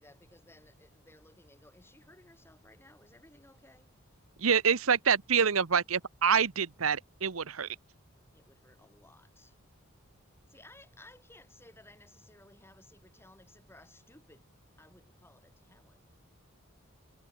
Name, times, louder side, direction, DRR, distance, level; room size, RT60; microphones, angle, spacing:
voice 1, 0.0-3.9 8.3-9.6 10.5-14.5 14.8-16.1, left 1 dB, 10° left, 6.8 m, -58 dB
voice 2, 4.4-7.7, right 6 dB, 75° right, 1.0 m, -26 dB
head